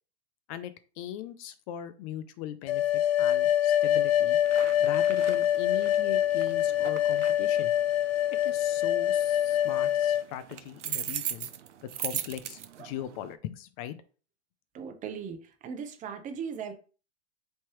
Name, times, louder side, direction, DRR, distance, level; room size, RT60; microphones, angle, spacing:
voice 1, 0.5-4.4 4.8-7.7 8.3-11.5 12.0-13.9, left 11 dB, 35° left, 0.4 m, -39 dB
sound 1, 2.7-10.3, left 11 dB, 65° left, 0.7 m, -25 dB
sound 2, 4.4-13.4, right 10 dB, 90° right, 0.6 m, -40 dB
voice 2, 14.7-15.4 15.6-16.7, right 6 dB, 20° right, 0.8 m, -37 dB
4.3 x 3.2 x 3.0 m
hypercardioid pair, 120°, 35 cm